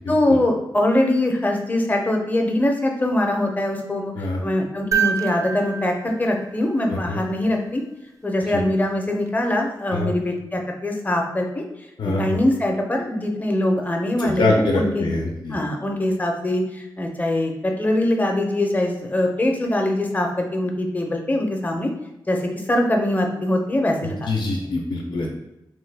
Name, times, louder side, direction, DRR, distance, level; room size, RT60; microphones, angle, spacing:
voice 1, 0.1-4.1 4.4-7.8 8.2-11.6 12.0-15.0 15.5-21.9 22.3-24.3 25.1-25.2, left 1 dB, 20° left, 2 dB, 0.6 m, -22 dB
sound 1, 4.9-7.2 9.3-9.4, right 8 dB, 40° right, 0.3 m, -27 dB
voice 2, 6.9-7.2 8.5-8.6 9.9-10.1 12.0-12.4 14.2-15.6 24.0-25.3, left 2 dB, 65° left, 0 dB, 0.5 m, -24 dB
2.9 x 2.2 x 3.3 m, 0.92 s
cardioid pair, 70°, 8 cm